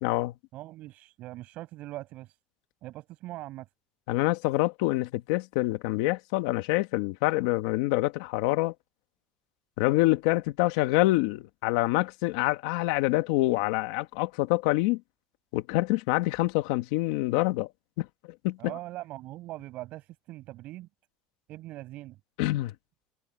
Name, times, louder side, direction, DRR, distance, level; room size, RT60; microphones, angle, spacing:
voice 1, 0.0-0.3 4.1-8.7 9.8-15.0 15.5-17.7 18.0-18.1 18.4-18.6 22.4-22.7, left 19 dB, 85° left, 1.5 m, -26 dB
voice 2, 0.5-2.4 2.8-3.7 18.6-20.9 21.5-22.2, right 16 dB, 50° right, 7.4 m, -41 dB
cardioid pair, 160°, 3 cm